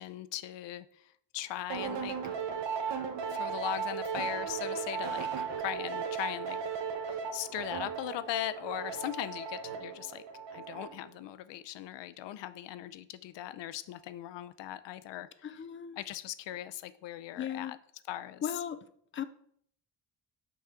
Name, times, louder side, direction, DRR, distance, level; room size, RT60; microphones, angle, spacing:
voice 1, 0.0-2.2 3.3-5.3 5.6-6.6 7.1-10.2 10.5-15.3 16.0-17.8 18.1-18.4, left 13 dB, 90° left, 14 dB, 0.5 m, -39 dB
sound 1, 1.7-11.1, right 6 dB, 90° right, 0.9 m, -36 dB
voice 2, 15.4-16.0 17.4-17.8 18.4-18.9 19.1-19.2, left 9 dB, 30° left, 12 dB, 0.4 m, -37 dB
6.1 x 3.6 x 5.7 m, 0.66 s
cardioid pair, 140°, 42 cm